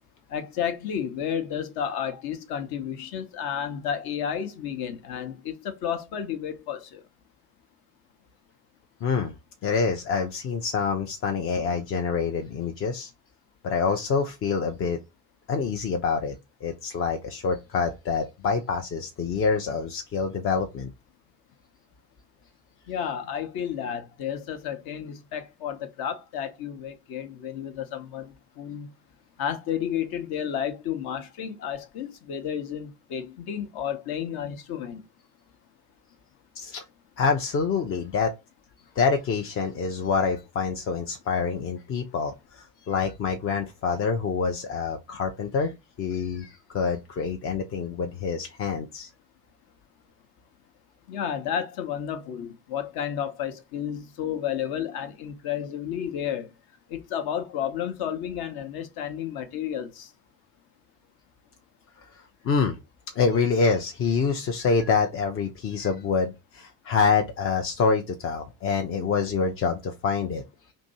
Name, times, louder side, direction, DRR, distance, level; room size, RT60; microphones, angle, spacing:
voice 1, 0.3-7.0 22.9-28.9 29.4-35.0 51.1-56.5 56.9-60.1, left 9 dB, 50° left, 0.8 m, -32 dB
voice 2, 9.0-9.3 9.6-13.1 13.6-15.0 15.5-16.3 16.6-20.9 36.6-36.8 37.2-38.3 39.0-45.7 46.0-49.1 62.0-62.8 63.1-70.4, left 5 dB, 30° left, 0.4 m, -26 dB
2.7 x 2.6 x 4.2 m
hypercardioid pair, 60°, 48 cm